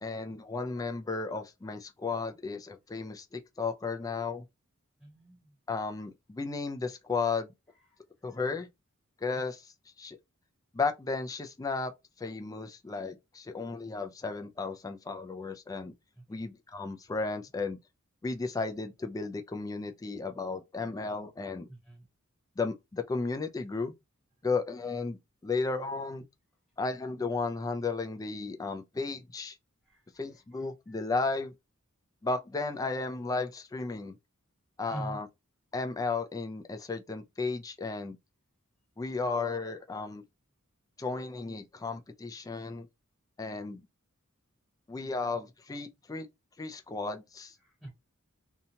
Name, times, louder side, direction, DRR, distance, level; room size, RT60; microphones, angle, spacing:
voice 1, 0.0-4.4 5.7-7.5 8.2-8.7 9.2-9.7 10.0-10.2 10.7-11.9 12.2-15.9 16.3-17.8 18.2-21.7 22.6-23.9 24.4-25.2 25.4-26.2 26.8-29.6 30.2-31.5 32.2-34.2 34.8-35.3 35.7-38.2 39.0-40.2 41.0-42.9 43.4-43.8 44.9-46.3 46.6-47.5, left 4 dB, 15° left, 0.3 m, -34 dB
voice 2, 5.0-5.5 7.9-8.0 8.3-8.4 16.3-16.4 21.7-22.0 29.8-30.6 30.9-31.0 34.9-35.2 47.6-47.9, right 1 dB, ahead, 1.0 m, -45 dB
2.7 x 2.2 x 2.7 m
head